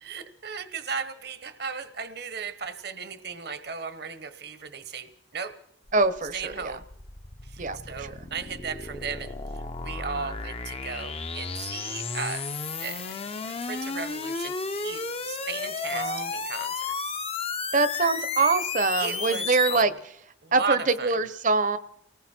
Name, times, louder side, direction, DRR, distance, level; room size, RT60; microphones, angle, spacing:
voice 1, 0.0-5.5 6.3-6.8 7.4-12.4 12.8-13.0 13.6-16.9 19.0-19.9 20.4-21.1, right 5 dB, 60° right, 10 dB, 1.3 m, -36 dB
sound 1, 5.9-19.8, left 4 dB, 35° left, 0.8 m, -33 dB
voice 2, 5.9-6.7 7.6-8.1 15.9-16.3 17.7-19.9 20.5-21.8, right 3 dB, 45° right, 13 dB, 1.0 m, -24 dB
29.5 x 19.5 x 4.5 m, 0.77 s
head